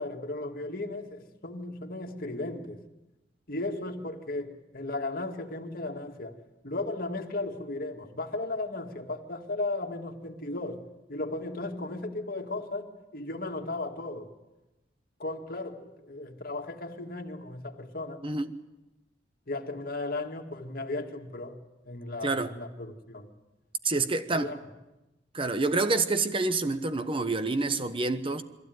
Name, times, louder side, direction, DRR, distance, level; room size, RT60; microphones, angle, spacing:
voice 1, 0.0-2.8 3.5-6.3 6.6-10.8 11.1-14.3 15.2-18.3 19.5-21.6 21.8-23.3 24.3-24.6, left 2 dB, 55° left, 2.0 m, -35 dB
voice 2, 22.2-22.5 23.8-24.5 25.3-28.4, right 3 dB, 30° right, 1.1 m, -27 dB
22.5 x 15.0 x 9.4 m
head